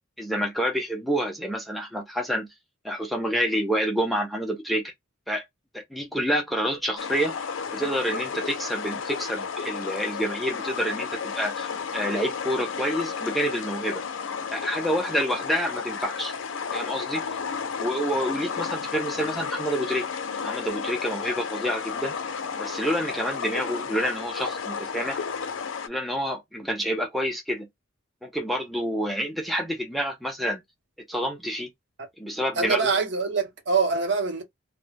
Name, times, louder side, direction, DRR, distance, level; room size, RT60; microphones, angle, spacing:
voice 1, 0.2-2.5 2.8-4.9 5.3-5.4 5.7-7.3 7.7-14.0 14.5-16.3 16.7-17.2 17.8-20.1 20.4-22.1 22.6-25.2 25.9-27.7 28.2-30.6 31.1-31.7 32.2-32.9, equal, ahead, 0.3 m, -28 dB
sound 1, 7.0-25.9, left 6 dB, 75° left, 0.4 m, -32 dB
voice 2, 32.6-34.4, right 4 dB, 55° right, 0.7 m, -24 dB
2.2 x 2.0 x 3.2 m
head